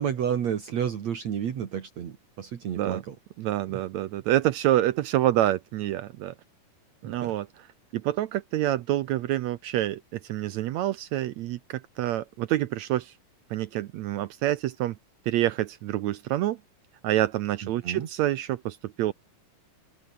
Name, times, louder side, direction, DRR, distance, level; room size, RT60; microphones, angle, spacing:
voice 1, 0.0-3.2 3.7-3.8 7.0-7.3 17.6-18.1, right 8 dB, 60° right, 2.9 m, -31 dB
voice 2, 3.4-6.3 7.0-7.5 7.9-13.1 13.5-15.0 15.3-16.6 17.0-19.1, right 14 dB, 75° right, 1.7 m, -27 dB
open air
omnidirectional pair, 3.8 m